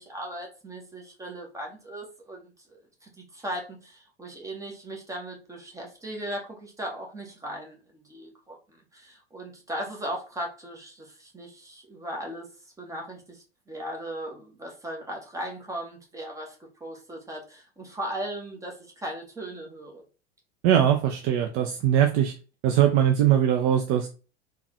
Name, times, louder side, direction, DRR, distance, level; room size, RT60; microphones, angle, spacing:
voice 1, 0.0-12.5 12.8-20.0, right 1 dB, 10° right, 0 dB, 0.9 m, -38 dB
voice 2, 20.6-22.3 22.6-24.1, right 10 dB, 30° right, 3 dB, 0.4 m, -21 dB
3.6 x 2.2 x 2.9 m, 0.34 s
figure-of-eight pair, 85°, 34 cm